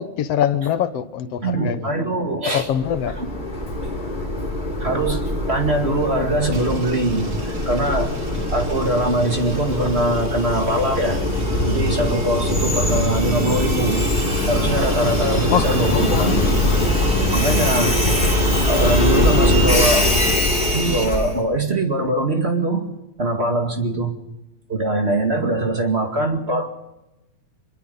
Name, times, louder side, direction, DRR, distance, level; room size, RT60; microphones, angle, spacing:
voice 1, 0.0-1.9 2.5-3.2 15.5-16.4, left 9 dB, 65° left, 1.8 m, -23 dB
voice 2, 1.4-2.7 3.2-3.3 4.8-8.1 8.5-11.2 11.6-14.1 14.5-16.4 17.3-18.0 18.7-20.1 20.7-22.9 23.2-24.1 24.7-26.7, right 2 dB, 25° right, 1.8 m, -22 dB
Train, 2.6-21.4, left 1 dB, 15° left, 3.6 m, -22 dB
sound 1, 6.5-21.0, right 3 dB, 50° right, 3.6 m, -33 dB
Aircraft, 7.6-20.2, left 6 dB, 80° left, 3.4 m, -37 dB
23.0 x 22.0 x 5.5 m
omnidirectional pair, 3.6 m